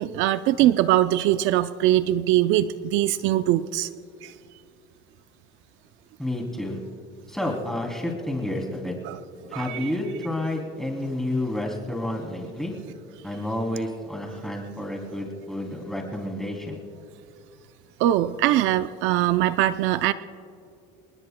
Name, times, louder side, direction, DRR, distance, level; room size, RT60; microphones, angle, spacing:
voice 1, 0.0-3.9 4.2-4.3 9.0-9.2 9.5-9.9 18.0-20.1, right 13 dB, 70° right, 12 dB, 0.5 m, -22 dB
voice 2, 6.2-6.8 7.3-8.9 9.5-12.8 13.2-16.8, left 1 dB, ahead, 0 dB, 3.0 m, -30 dB
29.0 x 20.0 x 2.2 m, 2.5 s
cardioid pair, 125°, 21 cm